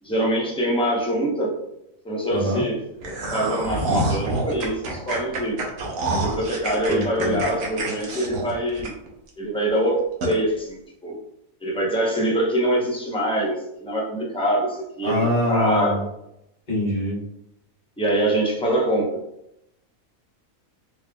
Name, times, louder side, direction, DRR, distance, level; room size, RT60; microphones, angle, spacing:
voice 1, 0.0-1.6 2.0-5.6 6.1-8.9 9.4-11.2 11.6-16.1 18.0-19.2, right 1 dB, 5° left, -3 dB, 0.6 m, -24 dB
voice 2, 2.3-2.6 6.9-7.4 15.0-16.0 16.7-17.2, equal, 30° left, -9 dB, 1.7 m, -23 dB
sound 1, 3.0-9.3 9.7-9.8 10.2-10.3, right 2 dB, 75° right, 1.2 m, -27 dB
4.4 x 3.2 x 2.3 m, 0.82 s
omnidirectional pair, 1.4 m